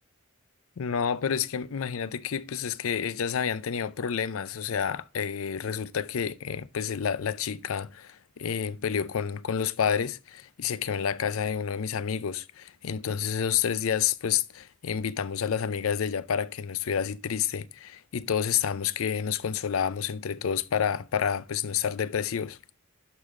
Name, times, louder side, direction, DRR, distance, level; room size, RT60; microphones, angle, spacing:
voice 1, 0.8-22.6, left 7 dB, 70° left, 0.5 m, -29 dB
11.5 x 5.4 x 3.6 m
head